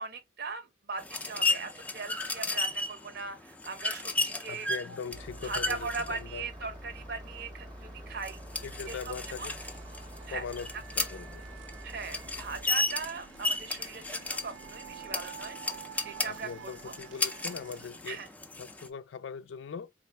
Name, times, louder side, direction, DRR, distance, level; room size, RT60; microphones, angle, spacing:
voice 1, 0.0-4.7 5.4-8.4 8.9-9.1 9.4-9.5 10.3-10.4 11.8-16.9 18.1-18.3, right 4 dB, 55° right, 0.8 m, -39 dB
sound 1, 1.0-18.9, left 2 dB, 10° left, 0.3 m, -35 dB
voice 2, 4.5-6.4 8.6-9.6 10.3-11.5 16.3-18.2 18.6-19.9, left 6 dB, 75° left, 0.4 m, -41 dB
Engine starting, 5.1-12.7, equal, 25° right, 0.7 m, -46 dB
sound 2, 8.6-17.9, right 8 dB, 80° right, 0.4 m, -50 dB
4.1 x 2.4 x 3.3 m
head